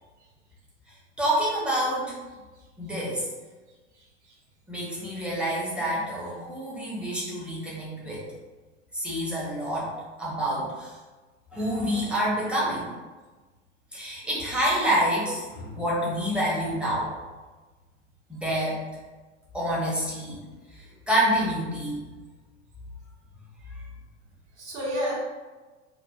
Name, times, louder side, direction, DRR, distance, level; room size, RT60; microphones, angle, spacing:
voice 1, 1.2-2.2 2.8-3.2 4.7-8.2 8.9-9.9 10.2-10.9 11.5-12.9 13.9-17.1 18.3-18.8 19.5-20.4 21.1-22.0 23.7-23.8, equal, 5° right, -7 dB, 0.8 m, -27 dB
voice 2, 3.9-4.3 24.5-25.2, equal, 70° right, -8 dB, 1.4 m, -32 dB
2.8 x 2.3 x 2.3 m, 1.3 s
figure-of-eight pair, 85°, 36 cm